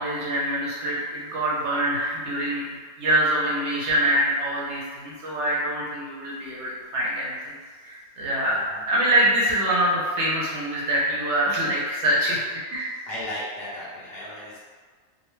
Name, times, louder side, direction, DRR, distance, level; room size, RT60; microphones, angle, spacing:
voice 1, 0.0-2.6 3.0-7.5 7.8-12.4 12.7-12.9, right 1 dB, 65° right, -5 dB, 0.8 m, -24 dB
voice 2, 13.1-14.6, left 1 dB, 55° left, -8 dB, 0.8 m, -35 dB
2.6 x 2.1 x 3.0 m, 1.5 s
omnidirectional pair, 1.4 m